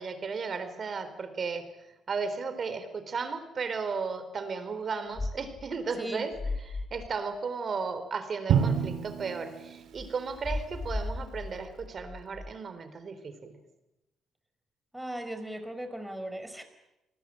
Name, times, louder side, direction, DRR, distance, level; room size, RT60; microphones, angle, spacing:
voice 1, 0.0-1.6 2.1-6.3 6.7-13.5, right 5 dB, 45° right, 10 dB, 4.1 m, -35 dB
sound 1, 5.2-5.7 6.3-7.1 9.9-12.5, left 2 dB, 25° left, 2.4 m, -36 dB
Drum, 8.5-10.5, right 7 dB, 75° right, 2.6 m, -29 dB
voice 2, 14.9-16.6, right 1 dB, 5° right, 8 dB, 5.0 m, -37 dB
28.0 x 19.5 x 8.9 m, 0.94 s
cardioid pair, 90°, 0 cm